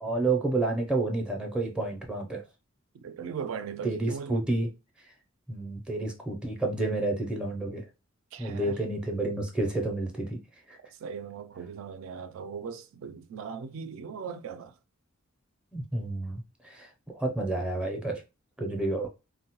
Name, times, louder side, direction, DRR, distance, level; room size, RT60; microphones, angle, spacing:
voice 1, 0.0-2.4 3.8-4.7 5.5-7.8 8.4-10.4 10.7-10.8 15.7-16.9 17.1-18.2 18.6-19.1, right 2 dB, 5° right, 0.4 m, -30 dB
voice 2, 3.0-4.3 8.3-8.8 11.0-14.7, right 6 dB, 70° right, 0.3 m, -38 dB
3.5 x 2.1 x 2.8 m
head